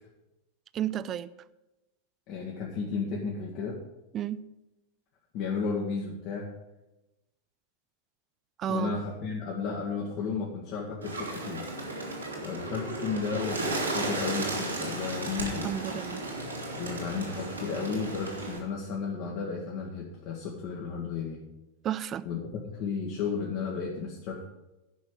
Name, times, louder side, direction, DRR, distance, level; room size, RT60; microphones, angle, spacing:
voice 1, 0.7-1.3 4.1-4.4 8.6-8.9 15.6-16.2 21.8-22.3, right 10 dB, 30° right, 16 dB, 0.4 m, -32 dB
voice 2, 2.3-3.8 5.3-6.5 8.7-11.7 12.4-15.7 16.8-21.4 22.2-22.4 22.7-24.4, left 5 dB, 45° left, -1 dB, 1.6 m, -33 dB
Bird, 11.0-18.6, right 2 dB, 80° right, 2.4 m, -34 dB
10.0 x 5.8 x 8.0 m, 0.99 s
figure-of-eight pair, 90°, 0 cm